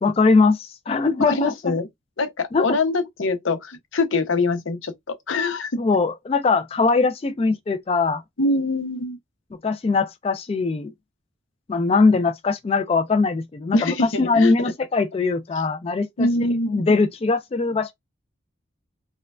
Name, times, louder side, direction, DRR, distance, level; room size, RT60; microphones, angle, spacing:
voice 1, 0.0-1.7 2.5-2.8 5.8-8.2 9.6-10.9 11.7-16.3 16.7-17.9, left 4 dB, 30° left, 0.3 m, -21 dB
voice 2, 1.2-1.9 2.2-5.8 8.4-9.2 13.7-14.7 16.2-16.8, left 2 dB, 90° left, 0.7 m, -24 dB
4.4 x 2.2 x 2.4 m
head